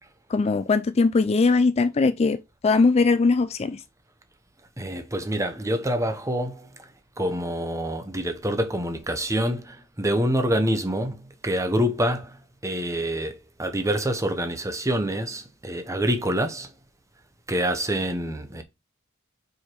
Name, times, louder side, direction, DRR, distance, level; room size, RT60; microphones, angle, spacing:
voice 1, 0.3-3.8, left 4 dB, 30° left, 0.3 m, -20 dB
voice 2, 4.8-16.7 17.5-18.6, equal, 15° right, 0.9 m, -26 dB
4.9 x 4.5 x 4.5 m
head